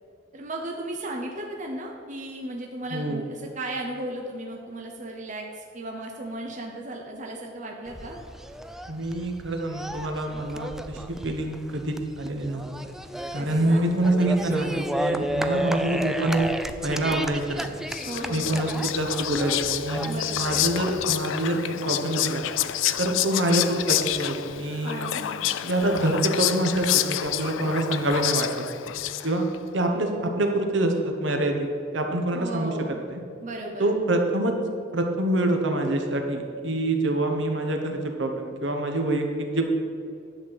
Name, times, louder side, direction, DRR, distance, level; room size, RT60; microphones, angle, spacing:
voice 1, 0.3-8.2 13.4-13.8 18.0-18.8 20.0-20.6 24.8-25.5 32.3-33.0 33.4-33.9, right 1 dB, 40° right, 0 dB, 0.9 m, -35 dB
voice 2, 2.9-3.2 8.9-12.7 13.3-16.5 16.8-17.7 18.3-22.5 23.0-25.0 25.6-28.7 29.2-29.5 29.7-31.7 31.9-33.2 33.8-34.5 34.9-39.7, right 1 dB, 70° right, 3 dB, 1.2 m, -26 dB
sound 1, 7.9-21.2, right 1 dB, ahead, 0.4 m, -33 dB
Whispering, 17.6-29.6, left 12 dB, 75° left, 0.4 m, -28 dB
10.5 x 4.4 x 7.8 m, 2.4 s
head